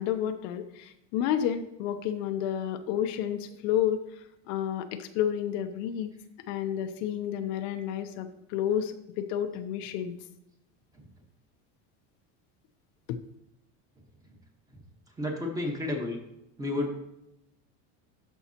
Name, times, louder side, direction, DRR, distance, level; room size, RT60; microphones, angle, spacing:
voice 1, 0.0-4.0 4.5-6.1 6.5-10.2 13.1-13.2, left 10 dB, 65° left, 8 dB, 0.7 m, -30 dB
voice 2, 15.2-16.2 16.6-16.9, left 2 dB, 10° right, 1 dB, 1.3 m, -31 dB
13.0 x 5.5 x 2.9 m, 0.83 s
cardioid pair, 150°, 37 cm